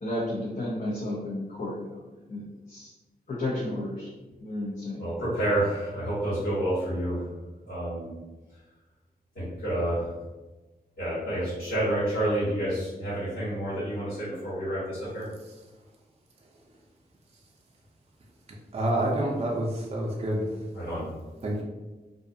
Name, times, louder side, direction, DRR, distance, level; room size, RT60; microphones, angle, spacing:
voice 1, 0.0-2.9 3.3-4.1 4.4-5.1, left 1 dB, 50° left, -6 dB, 0.6 m, -33 dB
voice 2, 5.0-7.3 7.6-8.1 9.3-10.1 11.0-15.3 20.7-21.1, right 1 dB, 85° left, -14 dB, 1.4 m, -29 dB
voice 3, 18.7-20.6 21.4-21.6, right 1 dB, 40° right, -2 dB, 0.4 m, -28 dB
2.4 x 2.3 x 2.6 m, 1.2 s
wide cardioid pair, 100°, 17 cm